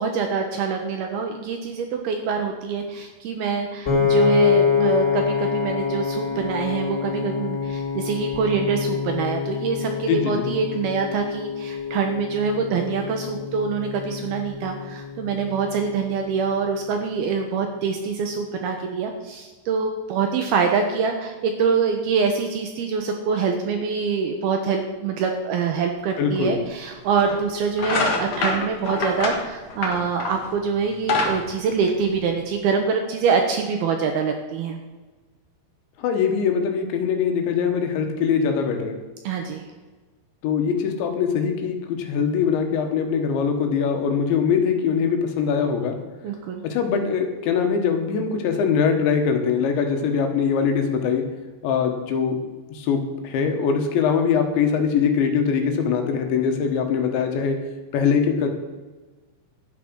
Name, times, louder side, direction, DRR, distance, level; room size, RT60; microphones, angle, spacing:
voice 1, 0.0-34.8 39.2-39.6 46.2-46.6, right 5 dB, 75° right, 4 dB, 2.5 m, -25 dB
Piano, 3.9-16.1, left 6 dB, 20° left, 3.1 m, -26 dB
voice 2, 10.1-10.5 26.2-26.6 36.0-39.0 40.4-46.0 46.6-51.2 51.6-52.4 52.7-57.6 57.9-58.5, left 6 dB, 75° left, 5 dB, 3.6 m, -22 dB
sound 1, 26.4-26.5 27.2-27.4 27.7-30.5 30.8-32.5, left 3 dB, 60° left, 1.7 m, -25 dB
11.5 x 9.0 x 6.3 m, 1.3 s
omnidirectional pair, 5.4 m